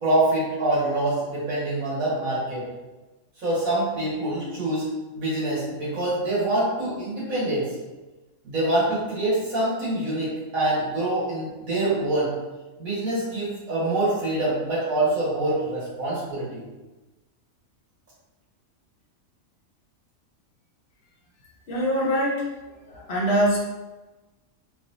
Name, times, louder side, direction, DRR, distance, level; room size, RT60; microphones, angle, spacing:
voice 1, 0.0-2.7 3.4-4.9 5.2-7.7 8.4-12.3 12.8-16.6, right 1 dB, 80° right, -9 dB, 2.1 m, -25 dB
voice 2, 21.7-22.5 22.9-23.6, equal, 50° left, -3 dB, 1.1 m, -23 dB
4.2 x 3.1 x 2.6 m, 1.1 s
omnidirectional pair, 1.4 m